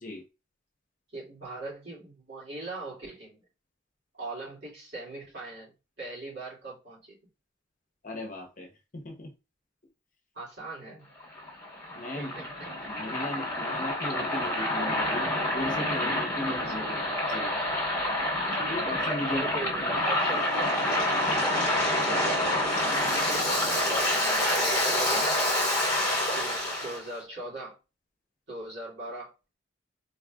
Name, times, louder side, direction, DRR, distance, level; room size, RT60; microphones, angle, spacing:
voice 1, 1.1-3.4 4.1-7.2 10.3-11.1 12.1-12.7 16.4-16.6 19.3-21.6 22.1-22.6 23.3-25.4 26.3-27.8 28.5-29.3, right 2 dB, 60° right, 2.4 m, -40 dB
voice 2, 8.0-9.3 11.9-12.3 12.9-17.6 18.6-19.5 22.0-22.2, left 1 dB, 40° left, 0.9 m, -37 dB
Waves surf, 11.2-27.0, left 1 dB, 15° left, 1.4 m, -27 dB
4.0 x 3.2 x 2.4 m
head